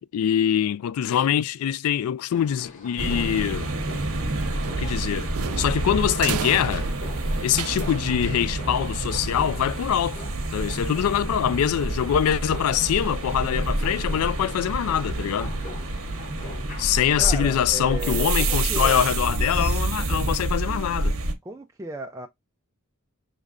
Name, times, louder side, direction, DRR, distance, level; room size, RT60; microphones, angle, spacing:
voice 1, 0.1-3.7 4.8-6.9 7.4-10.2 10.5-15.5 16.8-21.1, left 9 dB, 80° left, 0.3 m, -24 dB
sound 1, 2.3-18.2, left 2 dB, 35° left, 0.8 m, -44 dB
sound 2, 3.0-21.3, right 2 dB, 65° right, 0.9 m, -28 dB
sound 3, 4.6-9.0, right 8 dB, 90° right, 0.4 m, -35 dB
voice 2, 17.2-19.1 20.0-20.3 21.4-22.3, right 2 dB, 15° right, 0.4 m, -36 dB
6.5 x 3.1 x 2.3 m
head